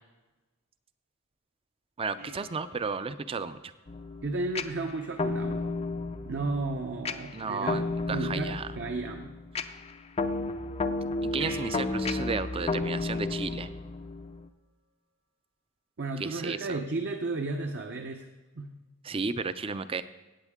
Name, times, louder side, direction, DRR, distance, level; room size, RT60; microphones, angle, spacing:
voice 1, 2.0-3.6 7.3-8.7 11.2-13.7 16.2-16.8 19.0-20.0, right 4 dB, 25° right, 13 dB, 0.4 m, -33 dB
sound 1, 2.2-4.8 7.6-8.6 11.4-14.3 17.4-17.5, right 1 dB, 85° right, 3.5 m, -49 dB
sound 2, 3.9-14.5, left 3 dB, 30° left, 0.4 m, -33 dB
voice 2, 4.2-5.7 6.3-7.8 8.1-9.3 16.0-18.3 18.6-18.7, right 3 dB, 55° right, 4 dB, 0.7 m, -33 dB
16.5 x 8.1 x 3.6 m, 1.2 s
head